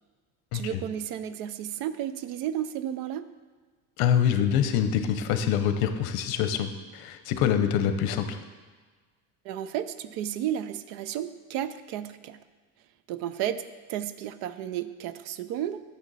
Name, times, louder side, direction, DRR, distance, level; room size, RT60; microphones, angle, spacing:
voice 1, 0.5-3.3 9.4-12.4 13.1-13.6 13.9-15.8, right 11 dB, 65° right, 13 dB, 0.5 m, -32 dB
voice 2, 4.0-8.4, left 8 dB, 65° left, 8 dB, 0.8 m, -25 dB
9.1 x 6.9 x 4.1 m, 1.4 s
cardioid pair, 180°, 39 cm